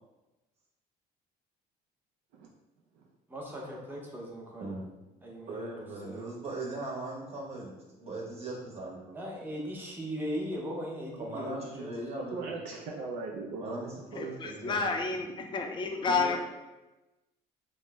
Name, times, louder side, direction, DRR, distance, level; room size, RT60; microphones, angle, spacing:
voice 1, 3.3-4.7 5.2-5.7 6.0-6.3 9.1-11.9, equal, 10° right, -2 dB, 0.7 m, -38 dB
voice 2, 5.5-7.7 8.0-9.2 11.2-12.5 13.6-14.9, right 2 dB, 40° right, -2 dB, 0.9 m, -39 dB
voice 3, 12.3-13.8 16.1-16.4, right 3 dB, 85° right, -1 dB, 0.4 m, -38 dB
voice 4, 14.1-16.4, left 4 dB, 30° left, 4 dB, 0.4 m, -30 dB
3.1 x 2.0 x 3.3 m, 1.0 s
cardioid pair, 110°, 17 cm